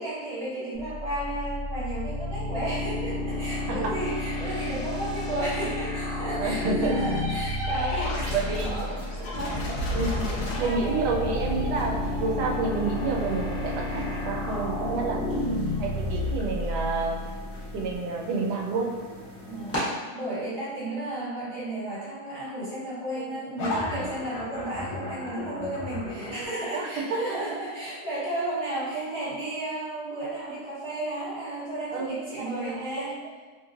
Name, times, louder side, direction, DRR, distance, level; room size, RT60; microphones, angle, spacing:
voice 1, 0.0-9.6 10.5-11.1 15.1-15.6 19.4-33.1, right 1 dB, 45° right, -10 dB, 1.4 m, -33 dB
sound 1, 0.8-18.0, left 1 dB, 50° left, 0.7 m, -31 dB
voice 2, 6.4-6.9 8.0-9.0 9.9-17.3 17.7-18.9 23.2-23.3 24.1-24.2 26.3-27.0 28.9-29.3 31.9-33.1, right 4 dB, 85° right, 0 dB, 1.2 m, -30 dB
sound 2, 6.8-16.2 23.6-26.5, left 1 dB, 75° left, 1.2 m, -34 dB
sound 3, 10.2-19.8, left 1 dB, 10° left, 0.7 m, -41 dB
3.0 x 2.9 x 2.4 m, 1.4 s
omnidirectional pair, 1.7 m